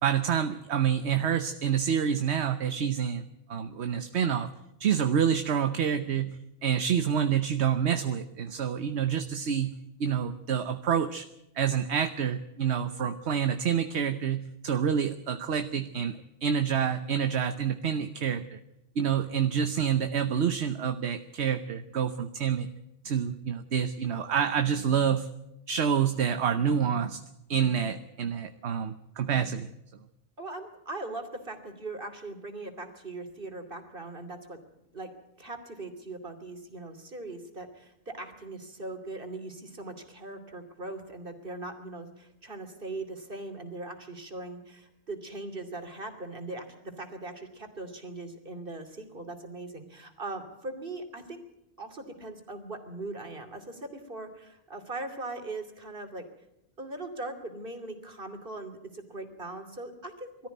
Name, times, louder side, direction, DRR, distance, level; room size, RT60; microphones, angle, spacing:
voice 1, 0.0-4.5 4.8-9.7 10.0-11.3 11.5-18.6 19.0-22.7 23.0-25.3 25.7-27.2 27.5-29.7, right 8 dB, 75° right, 9 dB, 1.2 m, -28 dB
voice 2, 30.4-34.6 34.9-35.1 35.4-51.4 51.8-56.3 56.8-60.5, right 2 dB, 50° right, 6 dB, 3.0 m, -40 dB
22.0 x 14.0 x 9.3 m, 0.86 s
omnidirectional pair, 1.1 m